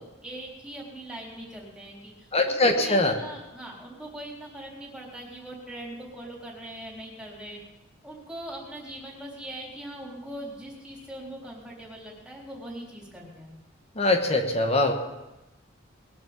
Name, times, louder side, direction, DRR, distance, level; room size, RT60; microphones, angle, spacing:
voice 1, 0.0-7.6 8.0-13.5, right 1 dB, 5° right, -3 dB, 4.0 m, -41 dB
voice 2, 2.3-3.1 14.0-14.9, left 2 dB, 30° left, 4 dB, 1.2 m, -22 dB
20.5 x 7.5 x 7.2 m, 1.1 s
head